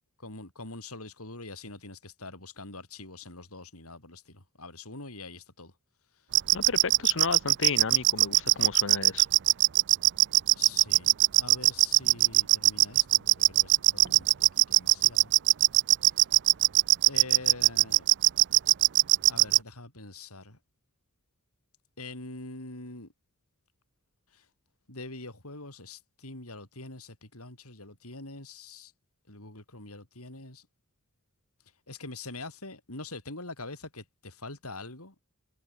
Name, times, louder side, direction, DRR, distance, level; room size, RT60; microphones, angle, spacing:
voice 1, 0.2-5.7 6.1-6.3 10.5-15.3 17.1-18.1 19.3-20.6 22.0-23.1 24.3-24.5 24.9-28.9 29.3-30.7 31.9-35.1, left 2 dB, 75° left, 7.8 m, -44 dB
sound 1, 6.3-19.6, right 17 dB, 55° right, 0.5 m, -20 dB
voice 2, 6.5-9.2, left 4 dB, 60° left, 1.3 m, -33 dB
head